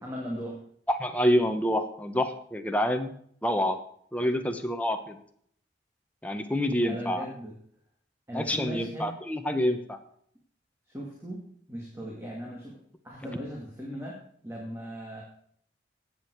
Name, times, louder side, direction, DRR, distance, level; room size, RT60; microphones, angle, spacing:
voice 1, 0.0-0.6 6.8-7.5 8.3-9.1 10.9-15.2, equal, 15° right, -2 dB, 2.2 m, -38 dB
voice 2, 1.0-3.1 3.4-3.8 4.1-5.2 6.2-7.2 8.3-10.0, equal, 5° left, 5 dB, 1.0 m, -27 dB
14.5 x 9.1 x 4.7 m, 0.64 s
head